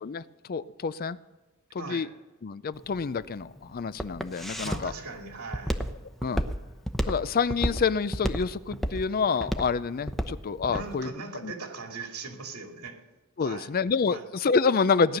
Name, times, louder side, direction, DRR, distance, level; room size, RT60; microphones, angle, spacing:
voice 1, 0.0-1.2 1.7-2.1 2.4-4.9 6.2-6.4 7.1-11.1 11.4-11.5 13.4-15.2, left 5 dB, 40° left, 16 dB, 0.4 m, -27 dB
voice 2, 1.8-2.1 4.6-5.8 10.7-13.0 13.4-13.7 14.1-14.2, right 4 dB, 85° right, 3 dB, 2.5 m, -39 dB
Walk footsteps, 2.8-10.9, equal, ahead, 0.8 m, -31 dB
17.5 x 10.5 x 6.5 m, 1.1 s
head